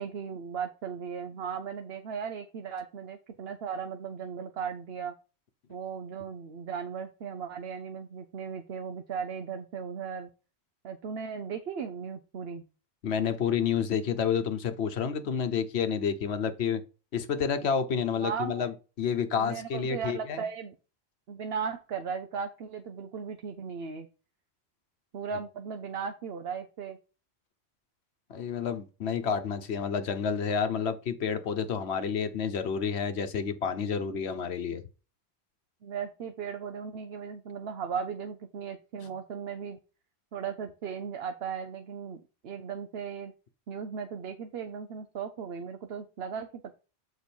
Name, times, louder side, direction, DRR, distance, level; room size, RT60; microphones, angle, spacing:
voice 1, 0.0-5.1 5.7-10.3 10.8-12.6 18.2-18.7 19.4-20.7 21.3-24.1 25.1-27.0 35.8-39.8 40.3-43.3 43.7-46.7, right 6 dB, 70° right, 0.9 m, -37 dB
voice 2, 13.0-16.8 17.1-20.4 28.3-34.8, left 7 dB, 75° left, 1.1 m, -29 dB
6.9 x 4.4 x 4.5 m
omnidirectional pair, 1.1 m